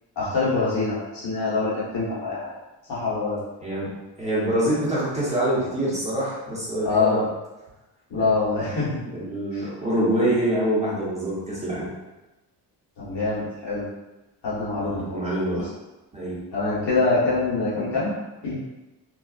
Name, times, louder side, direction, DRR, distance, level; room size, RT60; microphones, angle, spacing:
voice 1, 0.2-2.5 2.9-3.4 6.8-7.2 8.1-8.9 9.5-9.7 13.0-13.9 14.4-15.2 15.5-15.6 16.5-18.1 18.4-18.5, left 3 dB, 70° left, -8 dB, 1.2 m, -24 dB
voice 2, 4.2-7.3 9.1-11.9 14.8-15.6 16.1-16.4, right 1 dB, 15° right, -9 dB, 0.8 m, -25 dB
2.5 x 2.3 x 2.3 m, 1.0 s
cardioid pair, 120°, 43 cm